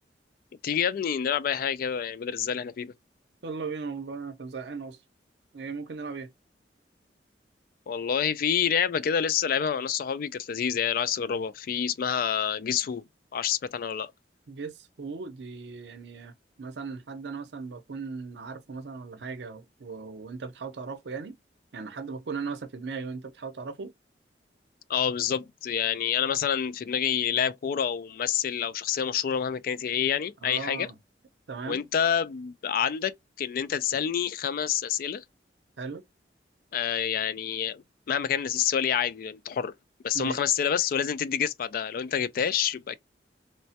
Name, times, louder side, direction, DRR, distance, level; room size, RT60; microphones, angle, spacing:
voice 1, 0.6-2.9 7.9-13.0 13.3-14.1 24.9-30.9 31.7-35.2 36.7-37.8 38.1-39.7 40.0-43.0, left 8 dB, 55° left, 0.3 m, -28 dB
voice 2, 3.4-5.0 5.5-6.3 14.5-21.4 21.7-23.9 30.4-31.0 31.5-31.8 35.8-36.0 40.1-40.4, right 4 dB, 70° right, 0.6 m, -37 dB
3.1 x 2.1 x 2.7 m
head